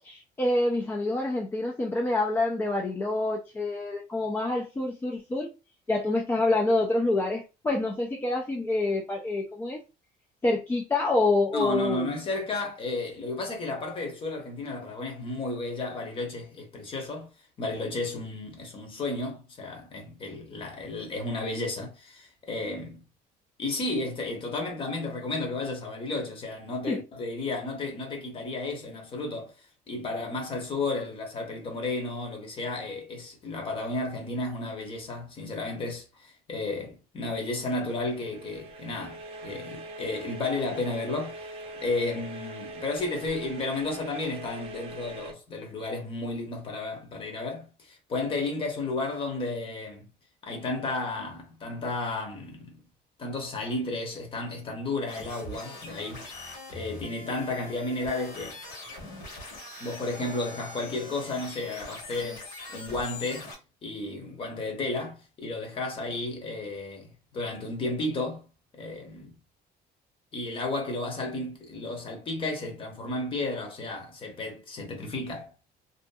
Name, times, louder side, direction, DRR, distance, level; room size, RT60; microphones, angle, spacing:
voice 1, 0.0-5.5 5.9-9.8 10.4-12.1 26.9-27.0, left 2 dB, 15° left, 0.3 m, -27 dB
voice 2, 11.5-17.3 17.6-23.0 23.6-41.5 41.8-50.1 50.4-52.8 53.2-58.6 59.8-63.5 63.8-68.4 68.7-69.3 70.3-75.5, left 2 dB, 30° left, 0.8 m, -33 dB
sound 1, 37.7-45.3, right 2 dB, 35° right, 0.6 m, -42 dB
sound 2, 55.1-63.5, left 2 dB, 65° left, 1.3 m, -42 dB
2.7 x 2.4 x 2.2 m
cardioid pair, 160°, 17 cm